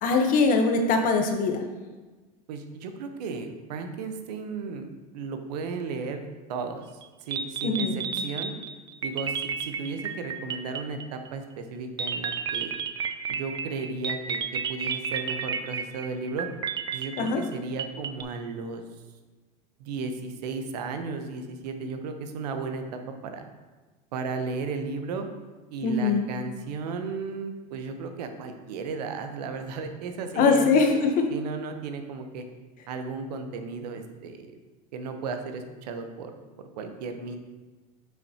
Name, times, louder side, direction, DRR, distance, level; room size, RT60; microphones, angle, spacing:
voice 1, 0.0-1.6 7.6-8.0 17.2-17.4 25.8-26.2 30.4-31.1, left 4 dB, 40° left, 4 dB, 0.9 m, -22 dB
voice 2, 2.5-6.8 7.2-8.5 9.0-12.7 13.3-16.5 16.9-18.8 19.8-23.5 24.1-25.3 25.7-32.4 32.9-34.5 34.9-36.3 36.8-37.4, right 4 dB, 80° right, 6 dB, 0.9 m, -35 dB
sound 1, 7.0-7.1 7.3-11.3 12.0-18.2, right 6 dB, 20° right, 0.4 m, -32 dB
7.4 x 5.8 x 2.9 m, 1.3 s
supercardioid pair, 125°, 20 cm